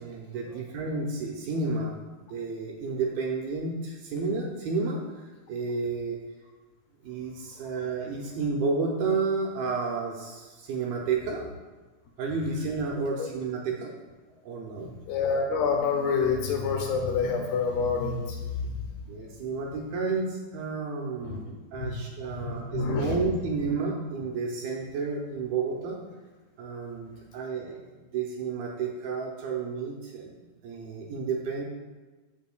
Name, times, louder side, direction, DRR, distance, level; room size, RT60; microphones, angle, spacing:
voice 1, 0.0-2.0 2.3-5.0 5.5-6.2 7.0-11.5 12.2-13.9 14.4-14.9 19.1-26.0 26.6-27.8 28.1-30.3 30.6-31.6, right 4 dB, 75° right, -1 dB, 2.4 m, -31 dB
voice 2, 14.8-18.7 21.2-21.4 21.8-21.9 22.2-23.2, left 5 dB, 75° left, 2 dB, 2.9 m, -28 dB
14.5 x 6.3 x 2.3 m, 1.2 s
omnidirectional pair, 5.0 m